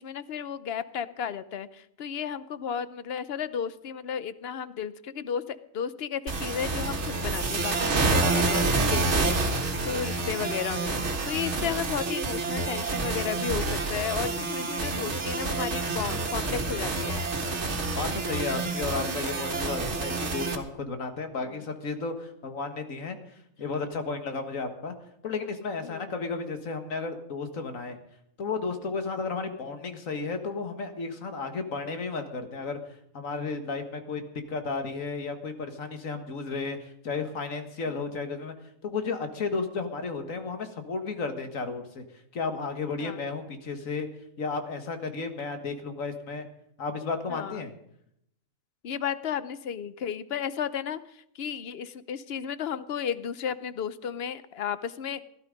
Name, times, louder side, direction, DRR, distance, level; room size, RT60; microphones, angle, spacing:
voice 1, 0.0-17.3 21.4-21.6 25.8-26.1 37.9-38.1 43.0-43.2 47.3-47.7 48.8-55.2, left 8 dB, 55° left, 15 dB, 0.9 m, -34 dB
sound 1, 6.3-20.6, right 3 dB, 60° right, 1.8 m, -28 dB
voice 2, 17.6-23.2 23.6-25.0 25.2-28.0 28.4-32.8 33.1-34.2 34.5-38.5 38.8-42.0 42.3-44.1 44.4-46.5 46.8-47.7, left 4 dB, 80° left, 7 dB, 2.0 m, -33 dB
16.5 x 12.0 x 5.2 m, 0.75 s
omnidirectional pair, 1.4 m